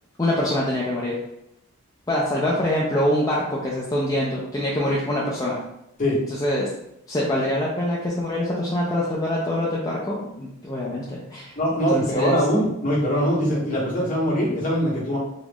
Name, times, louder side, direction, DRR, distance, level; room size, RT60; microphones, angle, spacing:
voice 1, 0.2-1.2 2.1-5.6 6.3-6.7 7.1-11.5 11.9-12.4, left 1 dB, 15° left, -5 dB, 0.4 m, -24 dB
voice 2, 11.6-15.2, equal, 40° left, -5 dB, 1.1 m, -22 dB
3.0 x 2.4 x 3.5 m, 0.82 s
head